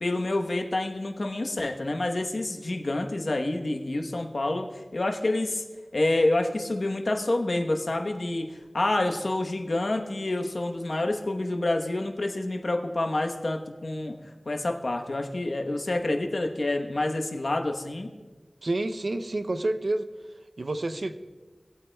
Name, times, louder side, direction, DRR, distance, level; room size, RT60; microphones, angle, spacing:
voice 1, 0.0-5.6 5.9-14.1 14.5-18.1, left 2 dB, 65° left, 3 dB, 1.0 m, -28 dB
voice 2, 18.6-20.1 20.6-21.2, right 2 dB, 70° right, 8 dB, 0.5 m, -29 dB
20.0 x 8.5 x 2.2 m, 1.3 s
wide cardioid pair, 65°, 0 cm